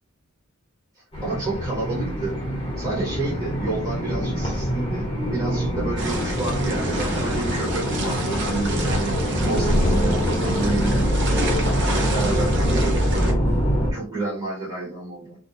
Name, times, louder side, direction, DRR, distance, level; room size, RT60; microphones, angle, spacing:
sound 1, 1.1-13.9, equal, 25° left, 1.0 m, -24 dB
voice 1, 1.2-2.4 2.8-9.2 9.4-11.5 11.9-13.4 13.9-15.4, right 3 dB, 20° right, -6 dB, 0.9 m, -30 dB
sound 2, 6.0-13.3, equal, 55° right, 0.7 m, -28 dB
2.5 x 2.3 x 2.7 m, 0.38 s
head